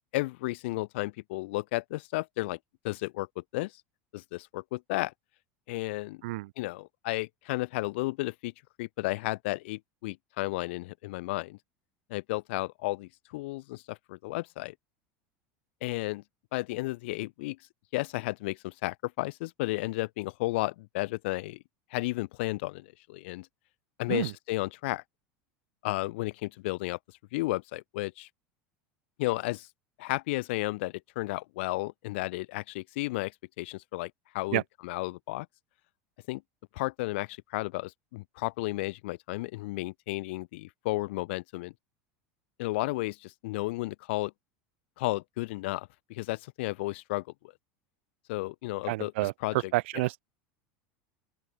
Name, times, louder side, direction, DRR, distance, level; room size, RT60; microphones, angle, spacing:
voice 1, 0.1-2.6 2.8-3.7 4.1-5.1 5.7-6.2 6.6-8.5 8.8-11.6 12.1-14.7 15.8-16.2 16.5-17.6 17.9-21.6 21.9-23.5 24.0-25.0 25.8-27.0 27.3-28.3 29.2-29.7 30.0-33.3 33.6-35.5 36.3-36.4 36.7-41.7 42.6-44.3 45.0-47.3 48.3-49.7, left 21 dB, 75° left, 0.4 m, -33 dB
voice 2, 48.9-49.3 49.7-50.2, right 20 dB, 80° right, 0.5 m, -29 dB
open air
supercardioid pair, 130°, 6 cm